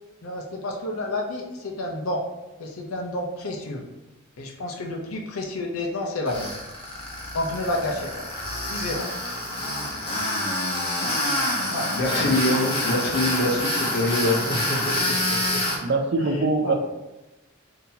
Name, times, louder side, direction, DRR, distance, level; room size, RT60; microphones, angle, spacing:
voice 1, 0.2-2.2 2.6-3.8 4.4-6.5 7.3-8.3 8.7-9.1 11.7-11.9 16.6-16.8, left 1 dB, 90° left, 1 dB, 0.7 m, -30 dB
Tools, 6.3-15.8, left 1 dB, 25° left, 0.9 m, -27 dB
voice 2, 11.9-15.6, left 1 dB, 55° left, 1 dB, 0.7 m, -25 dB
voice 3, 15.8-16.7, right 3 dB, 50° right, 4 dB, 0.4 m, -23 dB
3.9 x 2.8 x 2.7 m, 0.99 s
head